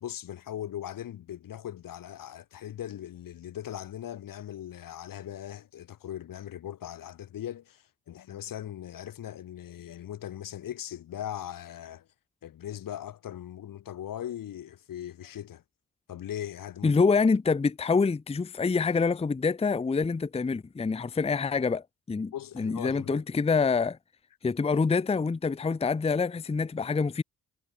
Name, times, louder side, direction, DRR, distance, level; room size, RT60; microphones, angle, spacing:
voice 1, 0.0-12.1 12.4-15.6 16.1-16.9 22.3-23.2, left 11 dB, 55° left, 0.9 m, -39 dB
voice 2, 16.8-24.0 24.4-27.2, left 4 dB, 15° left, 0.6 m, -26 dB
hypercardioid pair, 40°, 39 cm